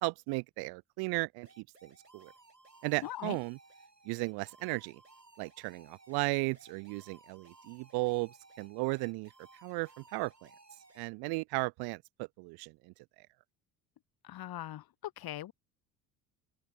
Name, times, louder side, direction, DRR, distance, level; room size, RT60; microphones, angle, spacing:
voice 1, 0.0-2.3 2.8-3.6 4.0-5.0 5.4-9.3 9.6-10.5 11.0-13.3, right 27 dB, 50° right, 0.7 m, -35 dB
sound 1, 1.4-11.1, right 3 dB, 90° right, 6.1 m, -59 dB
voice 2, 3.0-3.4 14.2-14.8 15.2-15.5, left 13 dB, 50° left, 3.5 m, -40 dB
open air
figure-of-eight pair, 55°, 48 cm